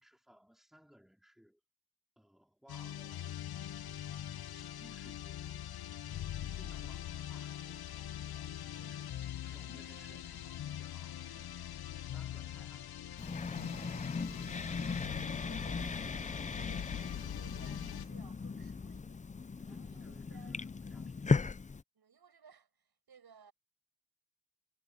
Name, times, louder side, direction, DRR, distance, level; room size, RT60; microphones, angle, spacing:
voice 1, 0.0-1.6 2.2-3.4 4.5-5.9 6.3-7.8 8.2-9.1 9.4-11.6 11.9-13.3 19.6-21.4, equal, ahead, 4.2 m, -62 dB
sound 1, 2.7-18.1, left 11 dB, 80° left, 0.6 m, -43 dB
voice 2, 6.7-7.0 8.7-9.2 14.0-16.2 16.5-19.2 19.7-20.6 21.9-23.5, right 7 dB, 85° right, 7.9 m, -61 dB
sound 2, 13.2-21.8, left 4 dB, 20° left, 0.3 m, -37 dB
wide cardioid pair, 180°, 37 cm